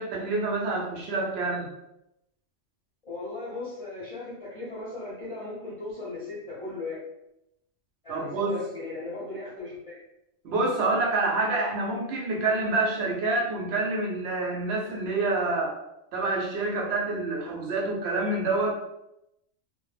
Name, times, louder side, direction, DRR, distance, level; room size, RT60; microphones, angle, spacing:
voice 1, 0.0-1.7 8.1-8.6 10.4-15.7 16.1-18.7, right 2 dB, 65° right, -1 dB, 0.8 m, -27 dB
voice 2, 3.0-7.0 8.0-10.0, left 2 dB, 40° left, -9 dB, 0.5 m, -37 dB
2.1 x 2.0 x 3.1 m, 0.86 s
omnidirectional pair, 1.3 m